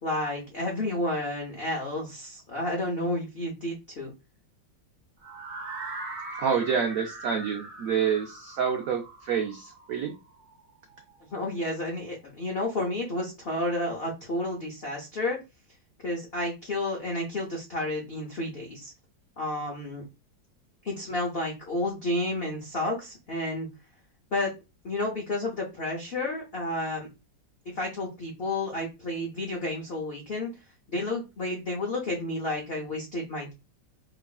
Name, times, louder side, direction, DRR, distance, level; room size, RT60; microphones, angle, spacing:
voice 1, 0.0-4.1 11.3-15.4 16.0-18.9 19.4-20.0 20.8-23.7 24.3-24.5 24.8-27.1 27.7-30.5 30.9-33.5, left 1 dB, 75° left, -1 dB, 0.5 m, -31 dB
sound 1, 5.2-11.1, right 2 dB, 65° right, 1.2 m, -41 dB
voice 2, 6.3-10.1, right 7 dB, 85° right, 4 dB, 0.7 m, -28 dB
3.0 x 2.4 x 2.3 m, 0.26 s
omnidirectional pair, 2.0 m